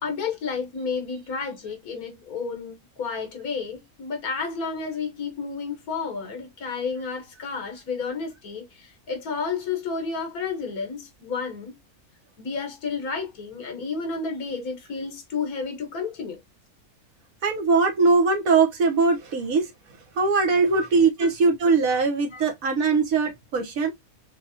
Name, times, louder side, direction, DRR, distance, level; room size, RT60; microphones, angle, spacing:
voice 1, 0.0-11.8 12.4-16.4 20.7-20.9 21.2-21.3 22.3-22.4, left 5 dB, 80° left, 1.7 m, -31 dB
voice 2, 17.4-19.7 20.1-23.9, right 4 dB, 70° right, 1.5 m, -21 dB
6.4 x 2.4 x 2.7 m
omnidirectional pair, 1.5 m